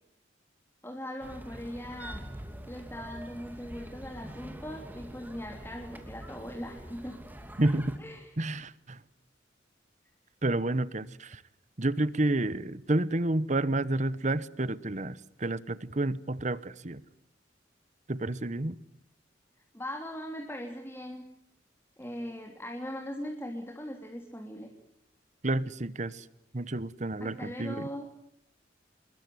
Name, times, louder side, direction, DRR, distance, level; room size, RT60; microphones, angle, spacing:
voice 1, 0.8-2.2 2.7-7.2 8.0-8.3 19.7-21.2 22.0-24.7 27.2-28.1, equal, 10° left, 3.1 m, -40 dB
sound 1, 1.2-8.0, equal, 10° right, 2.8 m, -45 dB
voice 2, 7.6-7.9 8.4-9.0 10.4-11.4 11.8-17.0 18.1-18.7 25.4-26.2 26.5-27.9, right 2 dB, 40° right, 1.1 m, -30 dB
28.0 x 22.0 x 9.4 m
head